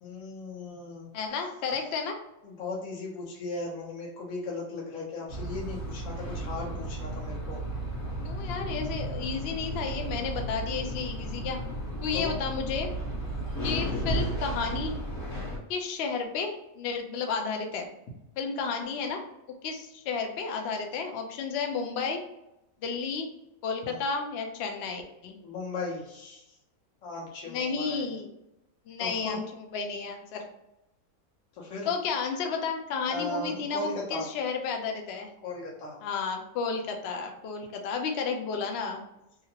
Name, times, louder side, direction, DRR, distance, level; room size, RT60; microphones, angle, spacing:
voice 1, 0.0-1.1 2.4-7.6 11.4-11.5 12.1-12.3 23.8-24.0 25.4-26.5 27.0-28.1 29.0-29.4 31.5-31.9 33.1-34.3 35.4-36.0, left 2 dB, 65° left, -4 dB, 1.1 m, -37 dB
voice 2, 1.1-2.2 8.2-11.6 12.0-12.9 13.6-14.9 15.7-17.9 18.4-19.2 19.6-22.2 22.8-23.3 23.6-25.4 27.5-28.3 28.9-30.5 31.9-35.3 36.0-39.0, left 5 dB, 80° left, 3 dB, 0.5 m, -32 dB
sound 1, 5.3-15.6, right 1 dB, 15° left, 0.6 m, -34 dB
2.8 x 2.4 x 2.8 m, 0.87 s
omnidirectional pair, 1.7 m